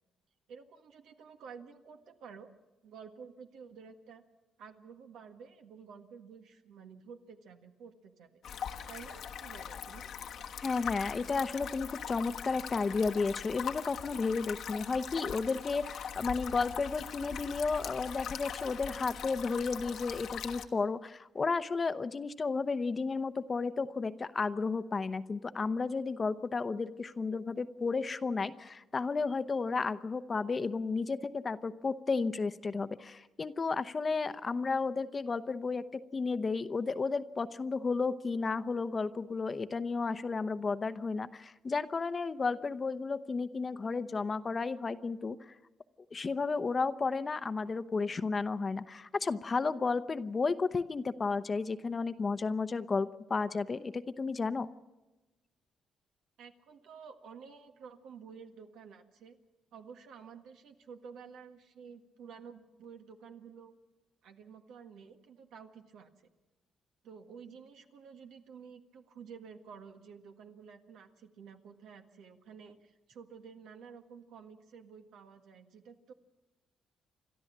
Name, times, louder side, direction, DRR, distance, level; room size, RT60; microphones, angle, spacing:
voice 1, 0.5-2.5 2.8-4.2 4.6-8.4 8.9-10.1 56.4-59.4 59.7-63.8 64.2-66.3 67.0-76.1, right 6 dB, 80° right, 5 dB, 1.7 m, -51 dB
sound 1, 8.4-20.7, left 8 dB, 70° left, 1.3 m, -41 dB
voice 2, 10.6-35.8 36.1-45.4 46.1-54.7, left 4 dB, 35° left, 12 dB, 0.8 m, -33 dB
29.5 x 12.5 x 7.4 m, 1.1 s
cardioid pair, 90°, 0 cm